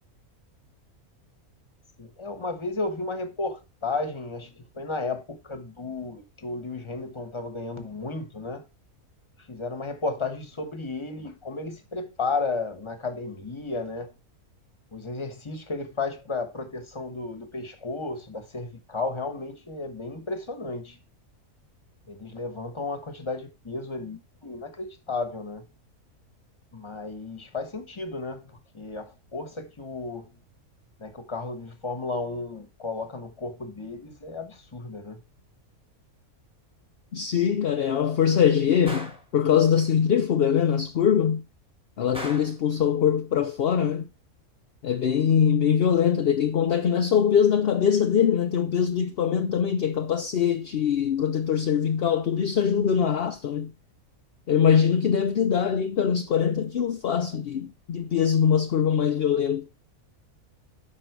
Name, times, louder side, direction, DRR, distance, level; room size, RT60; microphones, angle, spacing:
voice 1, 2.0-8.6 9.4-14.1 14.9-21.0 22.1-25.7 26.7-30.3 31.0-35.2, left 3 dB, 20° left, 1.2 m, -33 dB
voice 2, 37.1-41.4 42.0-44.1 44.8-53.7 54.5-59.6, left 8 dB, 55° left, 0.7 m, -23 dB
Gunshot gunfire, 38.9-39.3 42.1-42.6, equal, 5° right, 1.3 m, -37 dB
8.4 x 5.6 x 4.6 m
omnidirectional pair, 1.5 m